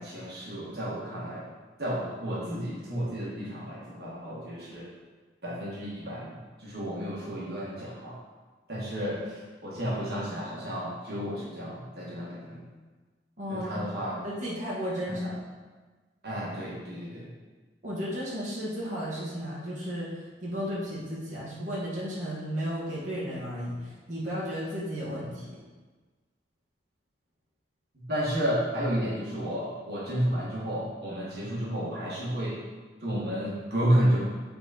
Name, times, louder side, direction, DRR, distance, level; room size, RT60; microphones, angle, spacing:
voice 1, 0.0-1.5 1.8-4.9 5.4-8.2 8.7-12.6 13.5-14.1 15.1-15.3 16.2-17.3 28.0-32.6 33.0-34.2, equal, 60° right, -7 dB, 1.8 m, -31 dB
voice 2, 13.4-13.7 14.1-15.3 17.8-25.6, equal, 45° right, -8 dB, 1.8 m, -34 dB
7.9 x 4.0 x 4.3 m, 1.3 s
head